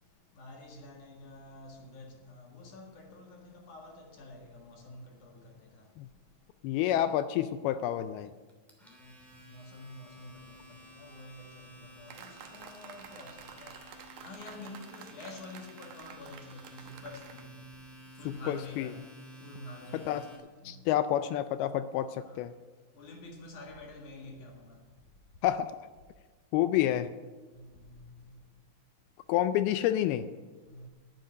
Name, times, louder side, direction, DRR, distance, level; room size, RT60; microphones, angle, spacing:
voice 1, 0.4-5.8 9.5-10.4 11.0-13.7 14.2-17.5 18.2-19.0 19.4-20.2 20.6-20.8 22.3-22.4 23.0-24.5 27.6-28.0 28.3-28.4 30.7-30.9, left 2 dB, 55° left, 2.9 m, -48 dB
voice 2, 6.6-8.3 18.3-18.9 20.1-20.3 20.7-22.5 25.4-25.7 26.5-27.1 29.3-30.3, left 12 dB, 85° left, 2.3 m, -29 dB
Domestic sounds home sounds, 8.5-20.4, equal, ahead, 1.9 m, -53 dB
sound 1, 12.1-17.5, right 8 dB, 70° right, 2.0 m, -50 dB
10.5 x 9.4 x 9.1 m
omnidirectional pair, 4.8 m